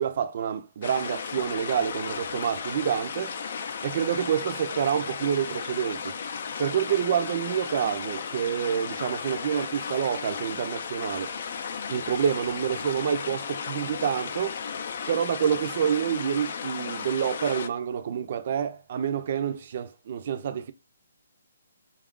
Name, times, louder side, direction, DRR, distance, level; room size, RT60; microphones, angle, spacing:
voice 1, 0.0-3.4 3.8-6.1 6.6-11.3 11.9-14.6 15.1-20.7, right 8 dB, 45° right, 0.4 m, -28 dB
sound 1, 0.8-17.7, left 6 dB, 50° left, 0.4 m, -35 dB
4.2 x 2.4 x 3.6 m
hypercardioid pair, 165°, 0 cm